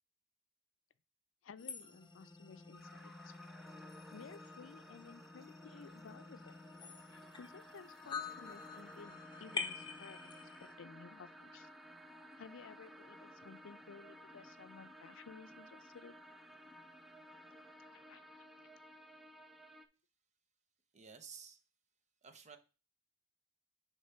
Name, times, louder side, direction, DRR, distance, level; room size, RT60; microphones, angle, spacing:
voice 1, 1.4-3.3 4.1-6.5 7.1-11.7 12.4-16.1 17.9-18.4, left 5 dB, 90° left, 0.4 m, -55 dB
sound 1, 1.6-10.7, left 5 dB, 25° left, 0.8 m, -48 dB
sound 2, 2.7-19.9, equal, ahead, 0.4 m, -56 dB
voice 2, 20.9-21.6 22.2-22.6, right 6 dB, 35° right, 0.7 m, -53 dB
6.6 x 3.2 x 5.5 m
head